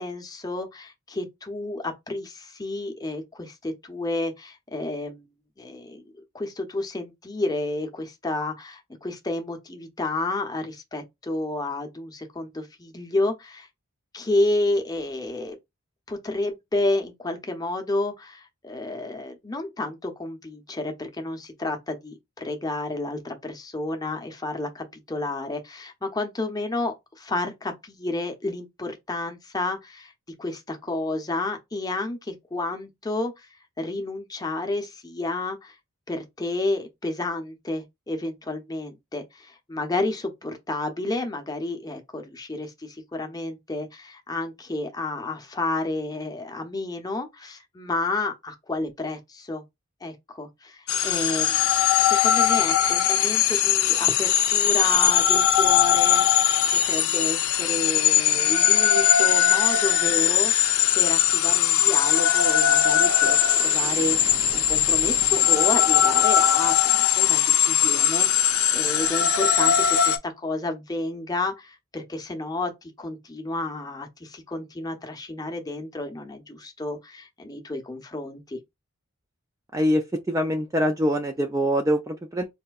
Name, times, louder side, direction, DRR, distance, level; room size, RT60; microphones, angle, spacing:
voice 1, 0.0-5.2 5.6-6.0 6.3-13.7 14.1-15.6 16.1-30.1 30.4-33.5 33.8-35.8 36.1-49.6 50.0-51.7 52.0-78.6, left 2 dB, 20° left, 0.7 m, -31 dB
sound 1, 50.9-70.2, left 10 dB, 80° left, 0.5 m, -20 dB
voice 2, 79.7-82.5, equal, 15° right, 0.3 m, -24 dB
4.2 x 2.7 x 2.3 m
head